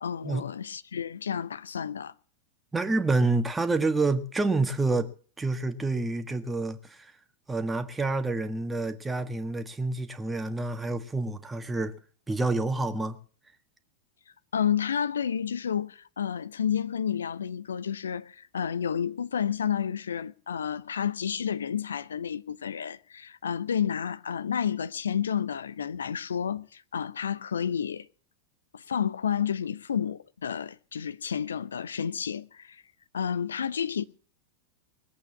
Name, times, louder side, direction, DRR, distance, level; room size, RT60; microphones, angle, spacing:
voice 1, 0.0-2.1 14.5-28.1 28.7-32.8 33.1-34.0, left 8 dB, 70° left, 0.7 m, -30 dB
voice 2, 2.7-5.1 5.4-7.1 7.5-11.9 12.3-13.2, right 3 dB, 10° right, 1.6 m, -28 dB
21.0 x 8.4 x 7.1 m
figure-of-eight pair, 90°, 0 cm